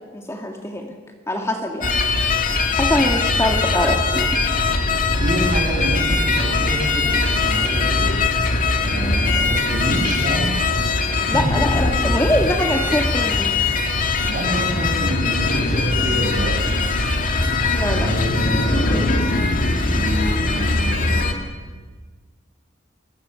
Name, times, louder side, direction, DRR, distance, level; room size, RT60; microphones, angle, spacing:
voice 1, 0.1-0.9 1.3-2.0 2.7-4.4 11.3-13.6 17.7-18.1, left 1 dB, 15° left, 2 dB, 2.1 m, -23 dB
sound 1, 1.8-21.3, left 3 dB, 45° left, 2.3 m, -21 dB
voice 2, 5.2-8.1 8.8-10.5 11.3-11.6 14.2-16.6 17.9-19.2 19.9-21.3, equal, 45° right, 0 dB, 7.7 m, -27 dB
28.0 x 23.5 x 7.0 m, 1.4 s
head